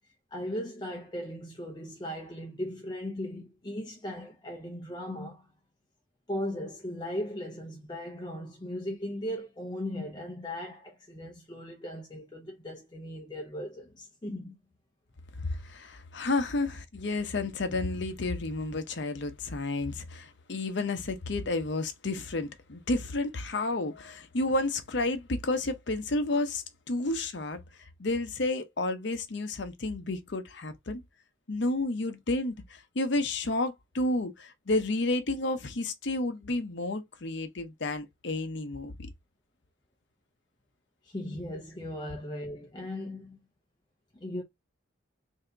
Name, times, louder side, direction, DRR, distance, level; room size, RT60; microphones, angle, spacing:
voice 1, 0.3-5.5 6.3-14.6 41.0-43.4 44.1-44.4, left 1 dB, 20° left, 0.5 m, -37 dB
voice 2, 15.4-27.6 28.0-31.0 31.5-38.9, left 2 dB, 60° left, 0.7 m, -31 dB
3.3 x 2.8 x 3.8 m
head